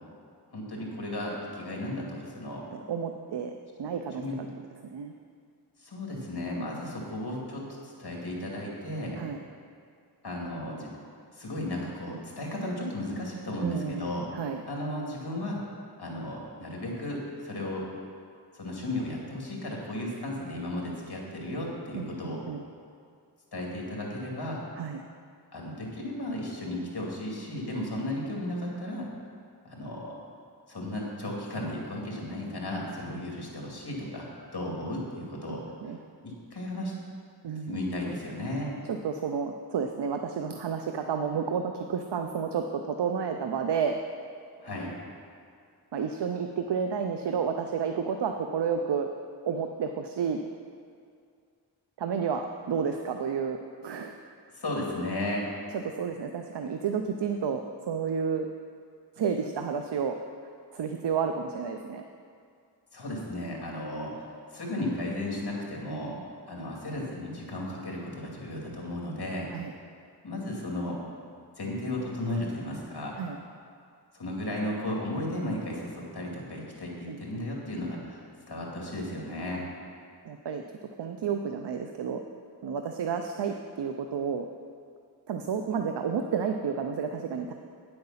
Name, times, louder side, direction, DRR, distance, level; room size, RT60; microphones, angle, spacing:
voice 1, 0.5-2.6 4.2-4.3 5.8-9.2 10.2-10.9 11.3-14.3 14.7-15.6 16.0-17.9 18.5-22.4 23.5-24.6 25.5-29.1 29.6-30.2 30.7-34.3 34.5-35.6 36.2-36.9 37.7-38.7 44.6-44.9 54.5-55.5 62.9-66.1 66.5-69.5 70.2-71.0 71.6-73.2 74.1-78.2 78.5-79.7, left 1 dB, 65° left, -2 dB, 2.4 m, -34 dB
voice 2, 2.7-3.5 3.8-4.5 4.8-5.1 9.2-9.4 13.6-14.6 21.9-22.6 24.8-25.0 35.8-36.0 37.4-37.8 38.9-44.0 45.9-49.1 49.5-50.4 52.0-53.6 53.8-54.2 55.7-57.6 57.9-58.5 59.2-60.2 60.7-62.0 65.9-66.2 69.5-69.7 73.2-73.4 77.1-77.7 80.2-80.6 81.0-82.2 82.6-84.5 85.3-87.5, right 6 dB, 80° right, 5 dB, 0.6 m, -31 dB
9.6 x 7.9 x 5.7 m, 2.3 s
wide cardioid pair, 60°, 41 cm